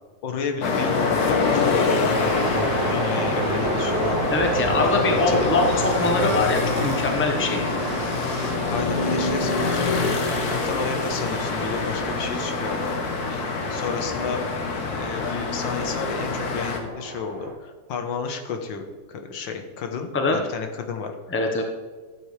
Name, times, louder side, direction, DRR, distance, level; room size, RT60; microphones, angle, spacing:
voice 1, 0.2-4.2 4.8-5.7 8.7-14.4 14.9-18.8 19.1-21.1, left 5 dB, 90° left, 5 dB, 1.8 m, -32 dB
sound 1, 0.6-16.8, left 4 dB, 60° left, 1.5 m, -26 dB
sound 2, 2.1-17.5, right 2 dB, 30° right, 1.3 m, -30 dB
voice 2, 4.3-5.6 6.0-7.9 20.1-20.4 21.3-21.6, left 3 dB, 10° left, 2 dB, 0.7 m, -23 dB
13.5 x 8.0 x 3.3 m, 1.4 s
omnidirectional pair, 2.0 m